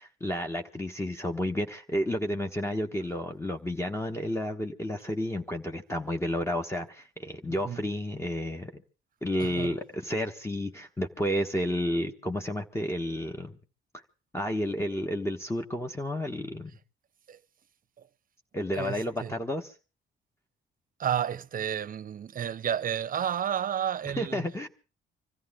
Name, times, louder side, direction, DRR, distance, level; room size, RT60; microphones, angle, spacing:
voice 1, 0.0-8.8 9.2-13.5 14.3-16.8 18.5-19.7 24.1-24.7, left 1 dB, 15° left, 1.3 m, -31 dB
voice 2, 9.4-9.7 17.3-17.4 18.7-19.3 21.0-24.4, right 9 dB, 45° right, 0.7 m, -31 dB
25.5 x 14.5 x 3.6 m
cardioid pair, 90°, 20 cm